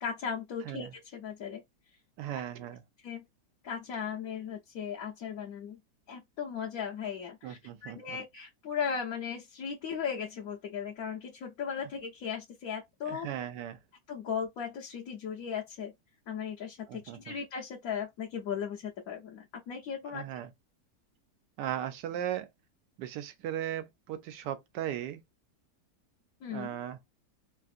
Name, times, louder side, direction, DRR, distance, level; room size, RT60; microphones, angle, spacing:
voice 1, 0.0-1.6 2.3-2.4 3.0-3.2 3.6-5.8 6.1-13.3 14.1-15.9 16.3-20.3 26.4-26.8, left 7 dB, 65° left, 1.1 m, -37 dB
voice 2, 2.2-2.8 7.4-8.2 13.1-13.8 16.9-17.4 20.1-20.5 21.6-22.5 23.0-25.2 26.5-27.0, right 11 dB, 85° right, 1.2 m, -37 dB
3.2 x 2.4 x 2.5 m
omnidirectional pair, 1.8 m